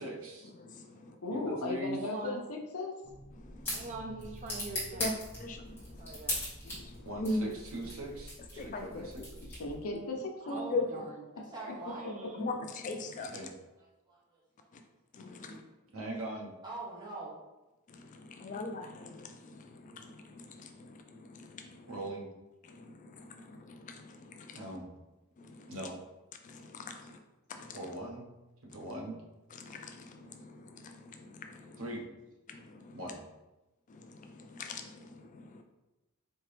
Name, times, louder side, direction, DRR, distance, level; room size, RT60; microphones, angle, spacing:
voice 1, 0.0-0.5 1.3-2.0 7.0-9.5 13.3-13.5 15.9-16.5 21.9-22.3 24.5-24.8 25.7-26.0 27.7-28.2 28.6-29.2 31.8-32.0 32.9-33.2, right 1 dB, 65° right, 0.8 m, -40 dB
voice 2, 0.6-1.2 3.4-3.8 5.0-5.1 5.4-6.1 6.6-7.4 8.6-9.1 10.7-10.9 12.4-13.4 14.7-14.8 15.1-15.6 17.9-21.9 22.6-24.6 25.4-25.7 26.4-27.2 27.5-27.8 29.5-31.8 32.5-33.0 33.9-35.6, left 3 dB, 35° left, 0.3 m, -41 dB
voice 3, 1.2-2.9 9.6-10.7, left 2 dB, 80° left, 0.6 m, -36 dB
voice 4, 2.0-2.4 3.7-5.1 6.0-6.4 7.0-7.1 10.4-11.3 11.8-12.5 15.3-15.6 31.9-32.0, right 3 dB, 35° right, 0.4 m, -43 dB
sound 1, 3.0-9.9, left 1 dB, 10° left, 1.5 m, -41 dB
voice 5, 11.3-12.0 14.1-14.7 15.4-15.5 16.6-17.4, right 3 dB, 20° right, 1.0 m, -44 dB
4.4 x 2.9 x 3.2 m
head